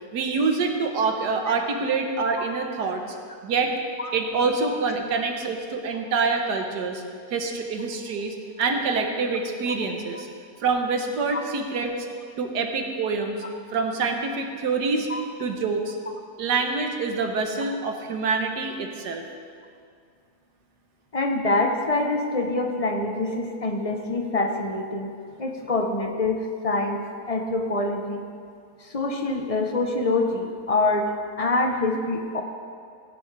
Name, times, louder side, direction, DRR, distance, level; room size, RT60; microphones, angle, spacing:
voice 1, 0.1-3.0 3.4-3.7 4.1-7.0 7.3-10.3 10.6-12.1 12.4-13.4 13.7-15.1 15.4-16.0 16.4-19.2, right 4 dB, 80° right, 4 dB, 1.6 m, -26 dB
voice 2, 21.1-25.1 25.4-28.2 28.8-32.4, left 2 dB, 35° left, 3 dB, 0.6 m, -25 dB
16.5 x 10.0 x 3.3 m, 2.2 s
omnidirectional pair, 1.7 m